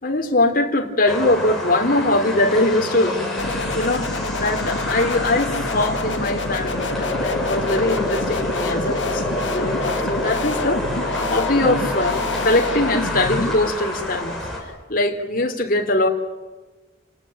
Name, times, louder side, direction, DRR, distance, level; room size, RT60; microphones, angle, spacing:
voice 1, 0.0-10.8 11.3-14.4 14.9-16.1, left 2 dB, 50° left, 3 dB, 3.5 m, -22 dB
sound 1, 1.1-14.6, left 1 dB, ahead, 7.6 m, -27 dB
sound 2, 3.4-13.7, left 3 dB, 85° left, 1.8 m, -28 dB
30.0 x 19.5 x 9.2 m, 1.2 s
head